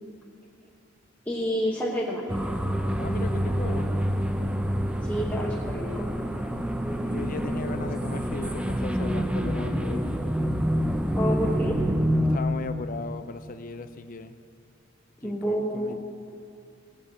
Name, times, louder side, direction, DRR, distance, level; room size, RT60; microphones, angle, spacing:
voice 1, 1.3-2.2 5.0-6.1 11.1-11.8 15.2-15.9, equal, 10° left, -5 dB, 1.1 m, -28 dB
sound 1, 2.3-12.4, equal, 5° right, 0.6 m, -27 dB
voice 2, 3.0-3.9 5.7-5.8 7.0-10.1 12.2-14.4 15.2-15.9, left 3 dB, 45° left, 10 dB, 0.6 m, -37 dB
16.5 x 5.7 x 8.6 m, 2.5 s
head